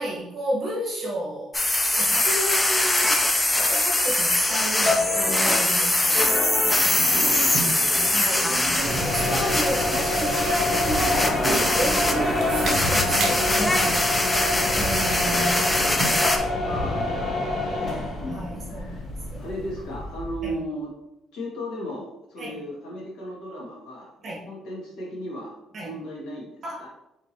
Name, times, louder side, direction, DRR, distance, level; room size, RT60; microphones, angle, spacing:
voice 1, 0.0-1.5 1.9-3.2 3.7-6.3 6.8-7.4 8.1-14.1 14.6-16.3 17.3-17.4 18.3-19.0 19.3-19.4 20.4-20.5 22.4-22.5 24.2-24.4 25.7-25.9 26.6-26.9, right 1 dB, 30° right, -3 dB, 1.1 m, -32 dB
sound 1, 1.5-16.4, left 2 dB, 10° left, 0.3 m, -23 dB
voice 2, 6.1-6.4 7.1-8.0 16.6-19.1 19.4-20.9 21.3-24.1 24.4-26.9, equal, 75° left, -4 dB, 1.5 m, -36 dB
sound 2, 6.6-16.3, right 3 dB, 60° right, 0.6 m, -33 dB
sound 3, 8.8-20.6, left 2 dB, 30° left, 0.7 m, -28 dB
4.3 x 3.5 x 2.8 m, 0.85 s
cardioid pair, 175°, 0 cm